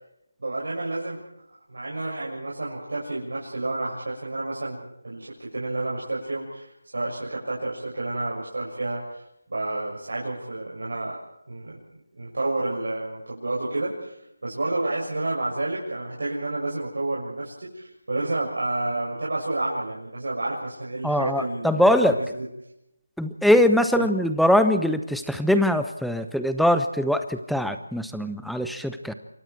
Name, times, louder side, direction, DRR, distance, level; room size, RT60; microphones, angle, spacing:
voice 1, 0.4-1.2 1.7-9.2 9.5-11.2 11.5-11.8 12.2-22.5 23.9-24.1, right 2 dB, 70° right, -4 dB, 7.0 m, -30 dB
voice 2, 21.0-22.1 23.2-29.1, left 1 dB, ahead, 9 dB, 0.8 m, -22 dB
27.5 x 24.5 x 4.6 m, 0.85 s
figure-of-eight pair, 165°, 0 cm